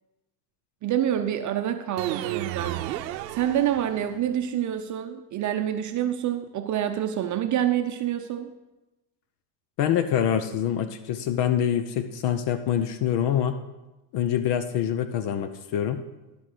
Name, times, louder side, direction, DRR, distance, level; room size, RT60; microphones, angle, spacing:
voice 1, 0.8-2.8 3.3-8.5, right 10 dB, 35° right, 7 dB, 0.7 m, -27 dB
sound 1, 2.0-4.3, right 13 dB, 85° right, 0.7 m, -33 dB
voice 2, 9.8-13.6 14.1-16.0, left 9 dB, 55° left, 10 dB, 0.9 m, -25 dB
14.0 x 5.1 x 6.2 m, 1.1 s
supercardioid pair, 100°, 49 cm